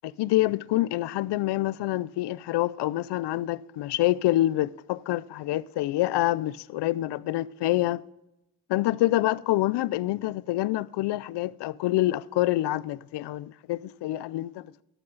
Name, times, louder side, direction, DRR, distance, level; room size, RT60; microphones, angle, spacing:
voice 1, 0.0-8.0 8.7-14.7, left 16 dB, 85° left, 0.5 m, -26 dB
13.0 x 9.0 x 3.9 m
cardioid pair, 85°, 40 cm